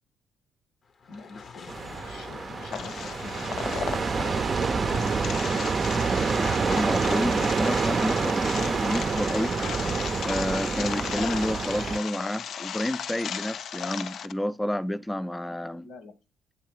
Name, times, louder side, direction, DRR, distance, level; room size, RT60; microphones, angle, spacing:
sound 1, 0.8-11.7, left 5 dB, 45° left, 0.8 m, -46 dB
voice 1, 1.1-4.1 4.6-6.2 15.8-16.1, left 3 dB, 85° left, 1.8 m, -44 dB
sound 2, 1.7-12.0, right 5 dB, 40° right, 0.6 m, -27 dB
sound 3, 2.7-14.3, left 8 dB, 65° left, 0.4 m, -36 dB
voice 2, 6.7-9.6 10.2-15.9, equal, 10° left, 0.5 m, -30 dB
8.3 x 3.4 x 4.9 m
cardioid pair, 90°, 0 cm